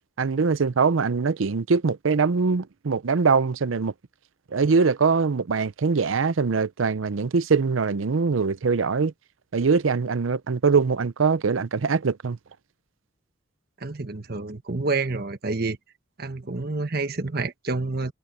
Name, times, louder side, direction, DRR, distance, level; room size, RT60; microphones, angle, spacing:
voice 1, 0.2-3.9 4.5-9.1 9.5-12.4, right 5 dB, 85° right, 0.6 m, -22 dB
voice 2, 13.8-15.8 16.2-18.1, right 3 dB, 50° right, 1.4 m, -28 dB
head